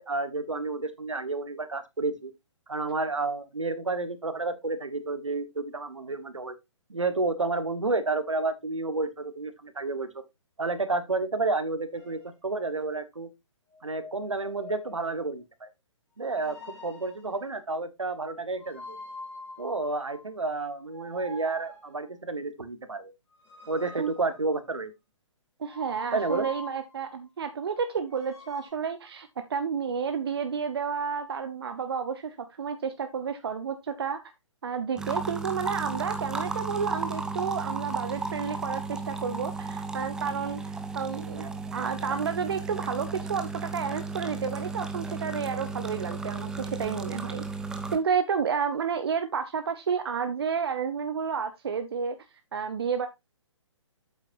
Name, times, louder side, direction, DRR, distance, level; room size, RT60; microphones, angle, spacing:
voice 1, 0.0-2.3 2.7-6.5 6.9-10.2 10.6-13.3 13.8-15.7 16.2-16.6 16.8-19.0 19.6-23.1 23.7-24.9 26.1-26.5 41.3-41.5, right 3 dB, 75° right, 1.4 m, -30 dB
sound 1, 11.9-12.3 13.7-15.2 16.2-17.4 18.6-20.3 20.9-22.1 23.3-24.9 25.7-27.1 28.1-28.7, left 2 dB, 15° left, 4.1 m, -45 dB
voice 2, 25.6-34.2 34.6-41.4 41.7-47.4 47.9-52.2 52.5-53.1, right 6 dB, 50° right, 0.8 m, -31 dB
sound 2, 35.0-48.0, right 4 dB, 5° right, 0.6 m, -34 dB
8.4 x 8.1 x 2.6 m
figure-of-eight pair, 130°, 16 cm